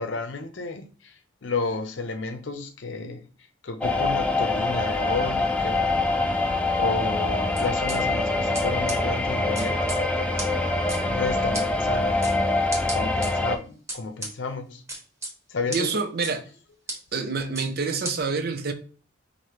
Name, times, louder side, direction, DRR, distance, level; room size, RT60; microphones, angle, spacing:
voice 1, 0.0-3.3 3.6-6.3 6.8-10.4 11.0-12.5 12.9-14.8 15.5-16.0, left 3 dB, 75° left, 0.6 m, -32 dB
sound 1, 3.8-13.6, left 2 dB, 5° left, 0.4 m, -24 dB
sound 2, 7.6-8.0 8.5-8.6 8.9-9.0 9.5-10.0 10.4-10.5 10.9-11.0 11.5-11.6 12.2-12.3 12.7-13.3 13.9-14.3 14.9-15.3 15.7-15.8 16.2-16.3 16.9-17.0 17.5-17.7 18.0-18.1, right 1 dB, 15° right, 1.3 m, -33 dB
voice 2, 15.7-16.5 17.1-18.7, right 4 dB, 55° right, 0.6 m, -27 dB
4.8 x 2.6 x 3.0 m
head